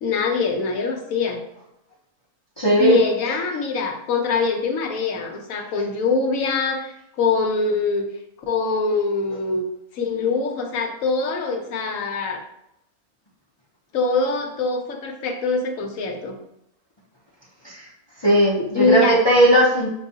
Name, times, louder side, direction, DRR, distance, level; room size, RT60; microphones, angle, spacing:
voice 1, 0.0-1.4 2.8-8.1 8.5-9.7 9.9-12.4 13.9-16.3 18.6-19.2, left 4 dB, 70° left, 3 dB, 1.0 m, -23 dB
voice 2, 2.6-2.9 17.6-17.7 18.2-19.9, right 1 dB, 25° left, -6 dB, 0.6 m, -17 dB
6.7 x 2.3 x 2.7 m, 0.80 s
omnidirectional pair, 1.5 m